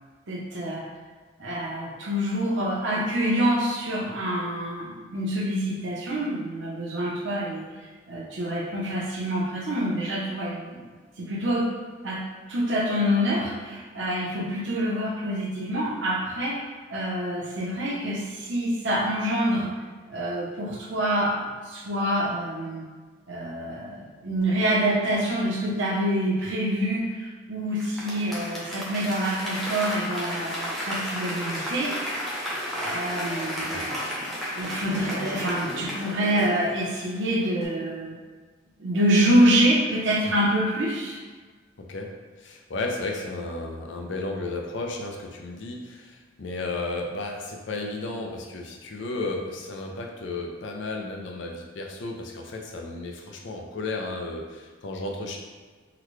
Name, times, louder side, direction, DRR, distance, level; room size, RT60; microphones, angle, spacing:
voice 1, 0.3-0.9 1.4-7.7 8.1-10.8 11.2-11.7 12.0-12.2 12.5-16.6 16.9-19.7 20.1-21.4 21.7-22.9 23.3-32.0 32.8-34.0 34.5-38.2 38.8-41.2, equal, 70° right, -3 dB, 0.7 m, -26 dB
Applause / Crowd, 27.8-37.2 37.6-37.7, equal, ahead, 0.5 m, -33 dB
voice 2, 41.8-42.1 42.4-55.4, left 2 dB, 70° left, 1 dB, 0.5 m, -33 dB
3.8 x 2.2 x 3.1 m, 1.4 s
head